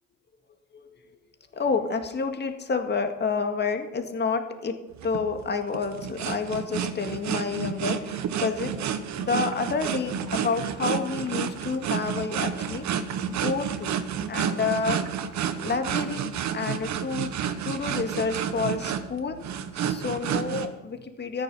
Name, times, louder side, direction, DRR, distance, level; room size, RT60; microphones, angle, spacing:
voice 1, 1.5-8.8 9.2-12.9 13.3-14.0 14.3-15.0 15.6-17.4 17.6-19.4 19.7-21.4, left 4 dB, 25° left, 6 dB, 1.9 m, -29 dB
sound 1, 5.0-20.7, right 8 dB, 50° right, 1.3 m, -30 dB
Computer keyboard, 9.2-9.3 9.5-9.9 10.2-11.7 12.1-12.8 13.1-13.5 13.8-16.2, right 11 dB, 70° right, 1.5 m, -46 dB
13.5 x 10.0 x 5.5 m, 1.1 s
hypercardioid pair, 75°, 38 cm